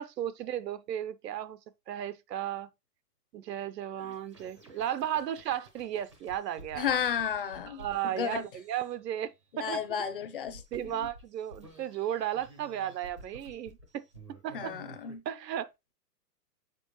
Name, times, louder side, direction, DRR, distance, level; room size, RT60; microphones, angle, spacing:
voice 1, 0.0-1.6 1.9-2.7 3.3-6.9 7.8-9.9 10.7-14.1 14.4-14.8 15.3-15.9, right 11 dB, 75° right, 0.8 m, -35 dB
sound 1, 4.0-15.2, right 2 dB, 20° right, 0.5 m, -53 dB
voice 2, 6.8-8.5 9.6-10.9 14.5-15.2, left 8 dB, 35° left, 0.7 m, -33 dB
6.9 x 4.5 x 3.0 m
hypercardioid pair, 180°, 49 cm